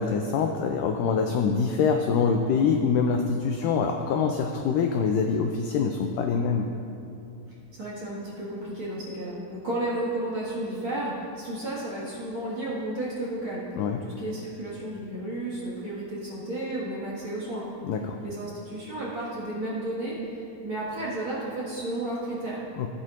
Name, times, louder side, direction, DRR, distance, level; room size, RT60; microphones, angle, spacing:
voice 1, 0.0-6.7 13.8-14.0 17.8-18.2 22.8-22.9, left 5 dB, 85° left, 4 dB, 1.9 m, -25 dB
voice 2, 7.7-17.7 18.2-22.6, right 1 dB, 45° right, -7 dB, 2.0 m, -33 dB
16.0 x 9.0 x 2.5 m, 2.7 s
omnidirectional pair, 4.3 m